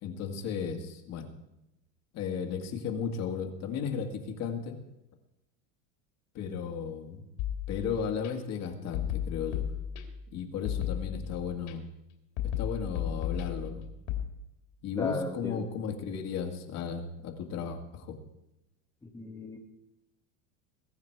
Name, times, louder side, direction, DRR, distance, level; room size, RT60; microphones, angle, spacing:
voice 1, 0.0-1.3 2.1-4.8 6.3-7.2 7.7-9.7 10.3-11.9 12.6-13.8 14.8-18.2, left 6 dB, 40° left, 4 dB, 2.0 m, -35 dB
sound 1, 7.4-8.3 8.9-10.3 10.6-11.7 12.4-14.2, left 10 dB, 60° left, 3.0 m, -34 dB
voice 2, 14.9-15.7 19.0-19.6, left 2 dB, 10° left, 0 dB, 1.2 m, -36 dB
22.0 x 9.3 x 4.6 m, 0.89 s
supercardioid pair, 145°, 40 cm